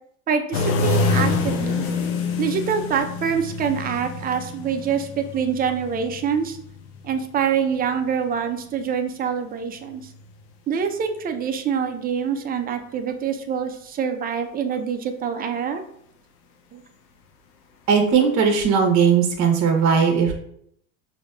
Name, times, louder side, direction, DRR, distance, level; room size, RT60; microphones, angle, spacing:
voice 1, 0.3-1.9 2.4-6.6 7.0-10.0 10.7-15.8 16.7-16.8, right 7 dB, 20° right, 7 dB, 0.4 m, -25 dB
sound 1, 0.5-8.3 9.9-10.3 18.7-18.8, left 3 dB, 70° left, 0.8 m, -27 dB
voice 2, 17.9-20.3, right 6 dB, 40° right, 3 dB, 0.8 m, -18 dB
5.1 x 2.8 x 2.3 m, 0.70 s
hypercardioid pair, 85°, 43 cm